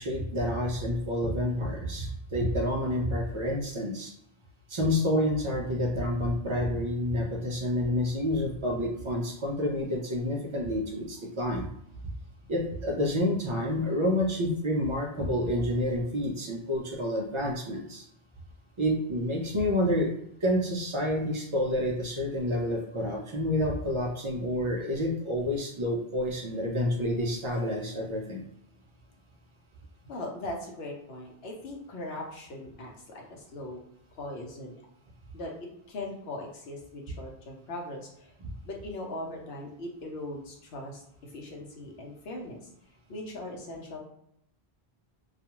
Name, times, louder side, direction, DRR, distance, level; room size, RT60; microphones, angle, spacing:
voice 1, 0.0-4.1 4.7-11.7 12.5-18.1 18.8-20.1 20.4-28.4, left 1 dB, 50° right, 0 dB, 0.3 m, -29 dB
voice 2, 30.0-33.8 34.2-34.8 35.3-35.5 35.9-38.3 38.6-42.7 43.1-44.0, left 1 dB, 75° left, 0 dB, 0.9 m, -39 dB
2.4 x 2.2 x 2.9 m, 0.75 s
omnidirectional pair, 1.1 m